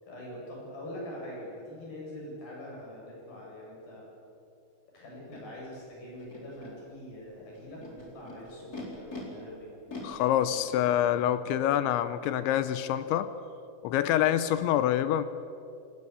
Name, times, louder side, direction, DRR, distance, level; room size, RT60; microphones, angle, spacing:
voice 1, 0.0-4.1 4.9-9.7 10.6-10.8, left 1 dB, 50° left, -3 dB, 9.2 m, -43 dB
Animal, 5.3-5.4 6.2-6.7 7.5-9.2 9.9-11.1, left 3 dB, 20° left, 4.1 m, -44 dB
voice 2, 10.0-13.3 13.8-15.2, left 11 dB, 80° left, 12 dB, 2.9 m, -26 dB
25.5 x 18.5 x 8.2 m, 2.6 s
omnidirectional pair, 5.6 m